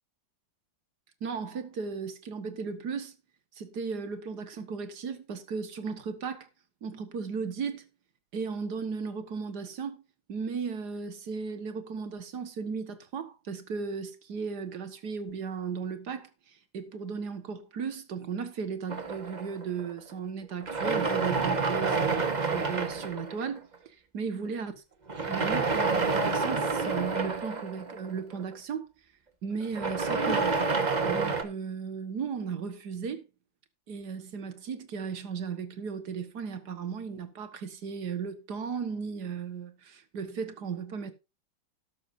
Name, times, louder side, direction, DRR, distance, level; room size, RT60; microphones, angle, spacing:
voice 1, 1.2-3.2 3.5-6.5 6.8-7.9 8.3-10.0 10.3-24.8 25.2-28.9 29.4-30.6 31.0-33.2 33.9-41.1, right 5 dB, 60° right, 2.0 m, -36 dB
sound 1, 18.9-20.1 20.6-23.7 25.1-28.5 29.6-31.4, right 4 dB, 25° right, 1.2 m, -29 dB
13.0 x 11.5 x 2.7 m
omnidirectional pair, 2.0 m